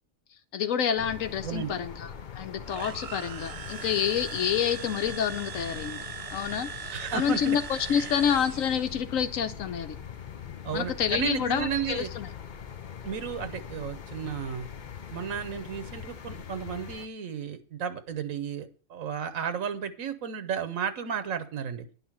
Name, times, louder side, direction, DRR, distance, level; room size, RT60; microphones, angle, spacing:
voice 1, 0.5-6.0 6.3-10.0 10.7-12.3, left 8 dB, 80° left, 11 dB, 1.2 m, -28 dB
sound 1, 1.0-17.1, left 7 dB, 45° left, 0.7 m, -42 dB
voice 2, 1.4-1.7 6.9-7.6 7.9-8.1 10.6-12.1 13.0-14.7 15.1-21.9, right 7 dB, 85° right, 10 dB, 1.3 m, -33 dB
sound 2, 2.7-9.0, right 6 dB, 65° right, 0.3 m, -40 dB
10.5 x 5.5 x 7.3 m, 0.41 s
omnidirectional pair, 1.4 m